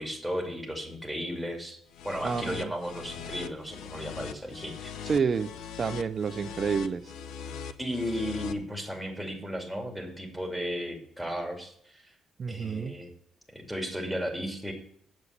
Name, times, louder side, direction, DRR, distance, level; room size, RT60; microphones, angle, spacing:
voice 1, 0.0-1.8 2.0-4.9 7.8-12.1 12.5-13.1 13.5-14.7, equal, ahead, 1 dB, 2.5 m, -35 dB
sound 1, 1.9-8.5, left 7 dB, 85° left, 0.6 m, -41 dB
voice 2, 2.2-2.7 5.0-5.5 5.8-7.1 12.4-13.0, right 6 dB, 45° right, 13 dB, 0.5 m, -29 dB
8.4 x 7.5 x 6.6 m, 0.67 s
cardioid pair, 90°, 0 cm